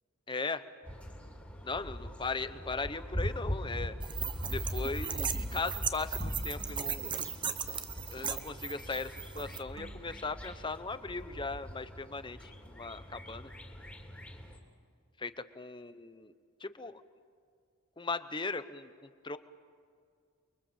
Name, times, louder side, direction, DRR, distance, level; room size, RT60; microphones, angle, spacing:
voice 1, 0.3-0.6 1.6-3.9 4.5-7.2 8.1-13.5 15.2-16.3 16.6-16.9 18.0-19.4, left 3 dB, 20° left, 12 dB, 0.8 m, -38 dB
sound 1, 0.8-14.6, equal, 5° left, 2.9 m, -41 dB
sound 2, 4.0-9.6, right 7 dB, 20° right, 0.9 m, -37 dB
sound 3, 5.1-7.6 8.2-11.0, right 3 dB, 65° right, 2.8 m, -56 dB
29.5 x 23.0 x 7.3 m, 2.2 s
head